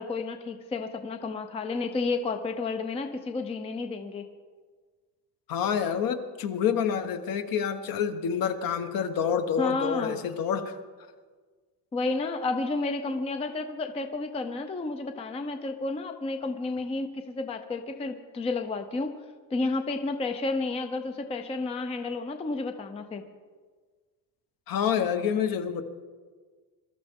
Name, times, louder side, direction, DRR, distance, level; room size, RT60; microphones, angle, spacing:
voice 1, 0.0-4.3 9.6-10.2 11.9-19.2 19.5-23.2, left 3 dB, 15° left, 7 dB, 0.5 m, -31 dB
voice 2, 5.5-10.8 24.7-25.8, left 7 dB, 55° left, 8 dB, 1.1 m, -28 dB
22.5 x 13.0 x 3.6 m, 1.5 s
cardioid pair, 170°, 41 cm